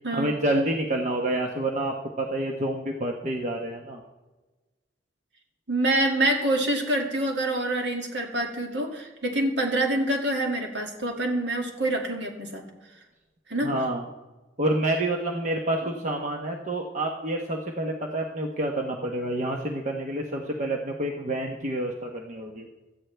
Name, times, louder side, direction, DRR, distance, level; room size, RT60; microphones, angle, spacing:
voice 1, 0.1-4.0 13.6-14.1 14.6-22.7, right 1 dB, 40° right, 1 dB, 1.1 m, -28 dB
voice 2, 5.7-12.6 13.5-13.7, right 1 dB, 65° right, 1 dB, 2.3 m, -26 dB
17.0 x 13.0 x 3.4 m, 1.2 s
head